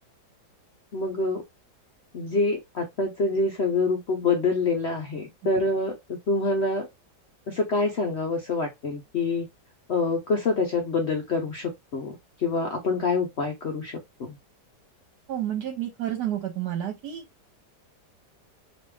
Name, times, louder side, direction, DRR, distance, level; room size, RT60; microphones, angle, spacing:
voice 1, 0.9-1.4 2.1-6.9 7.5-9.5 9.9-14.4, left 3 dB, 60° left, 0.7 m, -26 dB
voice 2, 15.3-17.2, right 11 dB, 75° right, 1.3 m, -30 dB
3.3 x 2.9 x 3.2 m
omnidirectional pair, 1.8 m